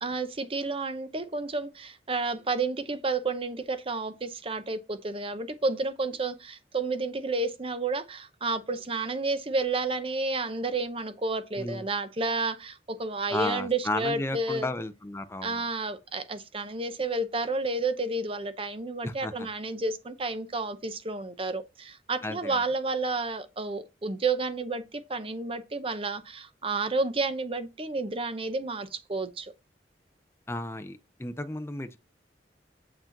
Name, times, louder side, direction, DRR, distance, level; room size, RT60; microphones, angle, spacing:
voice 1, 0.0-14.7 15.4-29.5, right 3 dB, 30° right, 0.7 m, -31 dB
voice 2, 11.5-11.9 13.3-15.6 19.0-19.5 22.2-22.6 30.5-32.0, left 2 dB, 15° left, 0.6 m, -33 dB
7.4 x 4.8 x 3.9 m
head